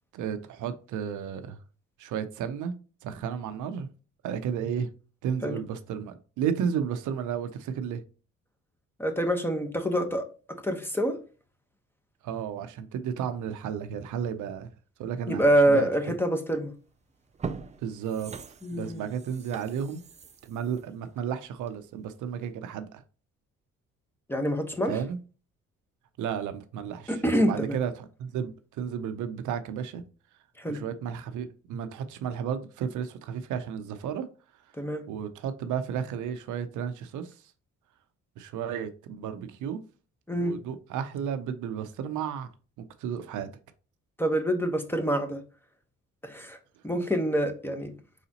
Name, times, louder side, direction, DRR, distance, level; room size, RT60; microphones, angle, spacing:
voice 1, 0.1-1.6 2.0-2.7 3.0-3.9 4.2-4.9 5.2-8.0 12.2-14.7 15.0-15.9 17.8-18.3 18.7-20.0 20.4-23.0 24.9-25.2 26.2-30.0 30.7-34.3 35.1-37.4 38.4-39.8 40.4-42.5 42.8-43.5, right 8 dB, 80° right, 0.6 m, -33 dB
voice 2, 9.0-10.2 10.6-11.2 15.3-16.7 18.6-19.0 24.3-25.0 27.1-27.8 30.6-30.8 34.8-35.1 40.3-40.5 44.2-45.4 46.2-46.6 46.8-47.9, right 1 dB, 5° left, 0.9 m, -26 dB
sound 1, 16.6-16.8 17.2-21.9 22.3-22.4, right 5 dB, 25° right, 0.4 m, -42 dB
4.8 x 4.0 x 2.8 m
cardioid pair, 90°, 30 cm